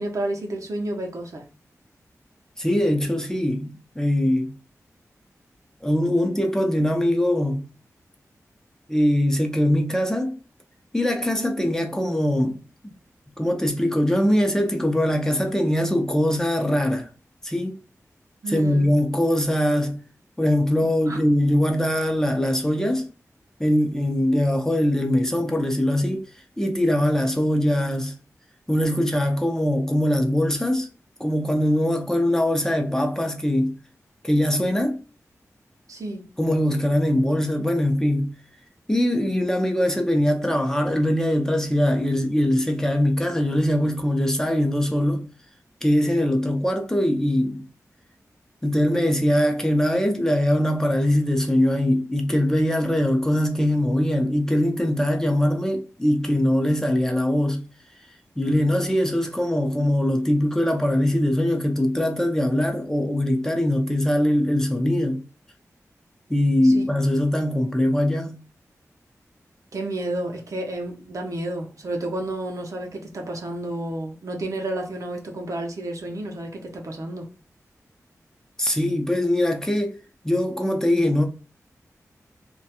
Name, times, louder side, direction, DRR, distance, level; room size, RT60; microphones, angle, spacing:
voice 1, 0.0-1.4 18.4-18.9 20.8-21.2 35.9-36.3 66.6-66.9 69.7-77.3, right 1 dB, 70° right, 0.6 m, -31 dB
voice 2, 2.6-4.5 5.8-7.6 8.9-10.4 10.9-12.6 13.4-17.1 17.4-17.8 18.5-20.0 20.4-23.1 23.6-26.3 26.6-28.1 28.7-30.9 31.2-33.7 34.2-35.0 36.4-38.4 38.9-45.3 45.8-47.7 48.6-57.7 58.4-65.2 66.3-68.4 78.6-80.0 80.2-81.3, left 1 dB, 10° left, 0.5 m, -22 dB
2.4 x 2.2 x 2.8 m
wide cardioid pair, 65°, 6 cm